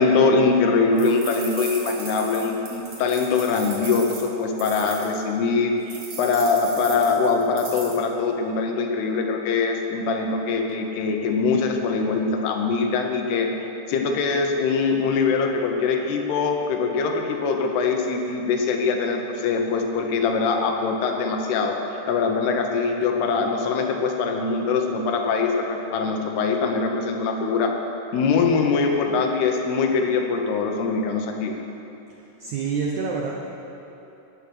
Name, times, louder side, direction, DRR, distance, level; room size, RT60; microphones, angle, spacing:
voice 1, 0.0-13.5 13.9-21.8 22.1-27.8 28.1-31.5, left 4 dB, 80° left, 3 dB, 3.1 m, -23 dB
sound 1, 1.0-5.1 5.9-8.0, right 3 dB, 45° right, 3.0 m, -37 dB
voice 2, 32.1-33.3, right 5 dB, 80° right, -1 dB, 1.7 m, -28 dB
15.5 x 9.8 x 6.3 m, 3.0 s
omnidirectional pair, 4.7 m